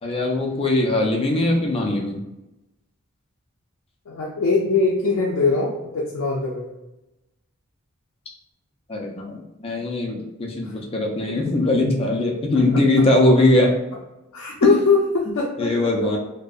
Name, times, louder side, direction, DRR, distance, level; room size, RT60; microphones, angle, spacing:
voice 1, 0.0-2.2 8.9-13.8 14.6-14.8 15.6-16.2, left 2 dB, 25° left, 0 dB, 0.4 m, -20 dB
voice 2, 4.1-6.7 10.6-10.7 11.3-11.4 14.3-15.7, left 4 dB, 90° left, -3 dB, 0.4 m, -21 dB
2.6 x 2.0 x 2.3 m, 0.96 s
head